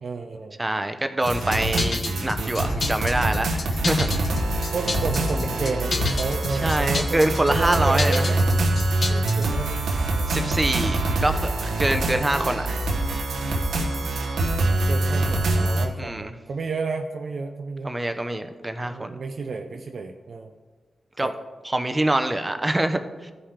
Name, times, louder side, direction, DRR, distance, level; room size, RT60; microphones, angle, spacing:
voice 1, 0.0-0.6 4.7-8.4 9.1-10.6 14.8-18.0 18.9-20.5 21.2-21.3, right 4 dB, 70° right, 4 dB, 0.5 m, -32 dB
voice 2, 0.6-4.2 6.6-8.3 10.3-12.8 16.0-16.3 17.8-19.2 21.2-21.3 21.7-23.3, right 1 dB, 25° right, 8 dB, 0.8 m, -25 dB
sound 1, 1.2-15.9, right 2 dB, 90° right, 1.0 m, -25 dB
sound 2, 1.3-9.5, left 3 dB, 65° left, 0.8 m, -30 dB
14.0 x 5.7 x 3.3 m, 1.4 s
supercardioid pair, 40°, 0 cm